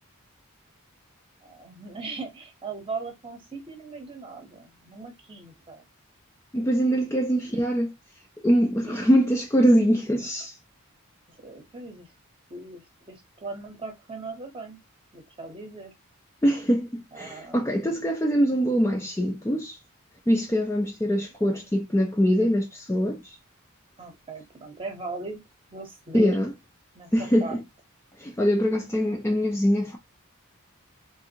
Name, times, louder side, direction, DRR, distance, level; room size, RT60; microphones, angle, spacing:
voice 1, 1.4-5.8 7.4-7.6 8.9-9.0 11.4-12.1 12.5-12.8 13.1-14.8 15.1-15.9 17.1-18.0 21.1-21.7 24.0-25.4 25.7-26.4 26.9-27.1 27.4-27.6, right 3 dB, 25° right, 0.8 m, -39 dB
voice 2, 6.5-7.9 8.4-10.6 16.4-19.8 20.3-23.4 26.1-26.5 27.1-27.6 28.2-30.0, equal, 10° left, 0.4 m, -23 dB
3.5 x 2.6 x 2.7 m
head